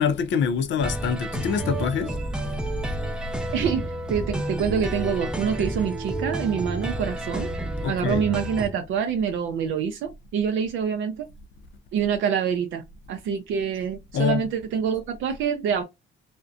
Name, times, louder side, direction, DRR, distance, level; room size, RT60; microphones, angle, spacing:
voice 1, 0.0-2.2 7.8-8.2 14.1-14.4, left 6 dB, 70° left, 0.5 m, -25 dB
sound 1, 0.8-8.7, right 1 dB, 5° right, 0.5 m, -30 dB
voice 2, 3.5-7.5 7.8-11.3 11.9-12.8 13.1-15.8, right 7 dB, 75° right, 0.5 m, -26 dB
2.6 x 2.1 x 2.4 m
cardioid pair, 90°, 20 cm